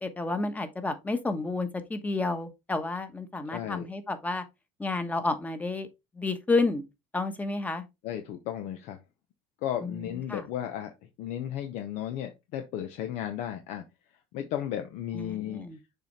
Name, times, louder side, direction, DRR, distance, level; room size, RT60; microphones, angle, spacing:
voice 1, 0.0-4.4 4.8-5.9 6.2-6.9 7.1-7.8 9.8-10.0 10.3-10.4 15.1-15.8, left 3 dB, 10° left, 1.1 m, -30 dB
voice 2, 3.5-3.9 8.0-9.0 9.6-10.9 11.2-13.8 14.3-15.6, left 11 dB, 70° left, 0.8 m, -34 dB
6.8 x 4.3 x 3.3 m
cardioid pair, 120°, 13 cm